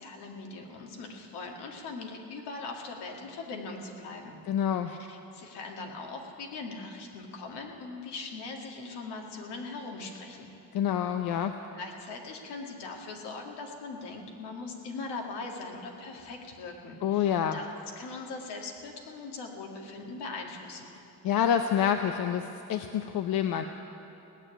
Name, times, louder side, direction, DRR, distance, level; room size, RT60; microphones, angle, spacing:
voice 1, 0.0-4.4 4.8-10.5 11.7-17.7 18.0-20.9, left 3 dB, 80° left, 1 dB, 2.2 m, -40 dB
voice 2, 4.5-4.9 10.7-11.6 17.0-17.6 21.2-23.6, left 9 dB, 60° left, 7 dB, 0.7 m, -27 dB
18.0 x 7.2 x 9.8 m, 2.9 s
cardioid pair, 105°, 40 cm